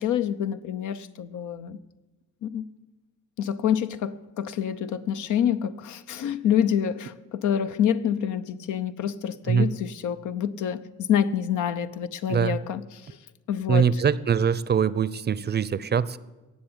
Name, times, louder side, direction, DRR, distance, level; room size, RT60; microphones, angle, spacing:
voice 1, 0.0-1.8 2.4-2.7 3.4-12.8 13.5-14.0, left 9 dB, 80° left, 0.8 m, -27 dB
voice 2, 13.7-16.2, right 7 dB, 35° right, 0.6 m, -23 dB
17.5 x 7.1 x 8.9 m
cardioid pair, 90°, 30 cm